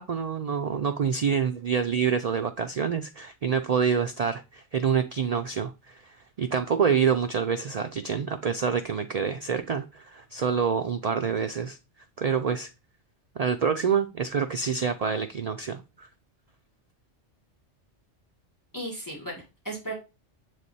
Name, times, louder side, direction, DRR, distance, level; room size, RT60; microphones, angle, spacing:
voice 1, 0.0-11.8 12.2-12.7 13.4-16.1, right 6 dB, 75° right, 0.3 m, -27 dB
voice 2, 18.7-19.9, right 1 dB, 15° left, 1.9 m, -36 dB
7.2 x 3.3 x 4.1 m
omnidirectional pair, 1.2 m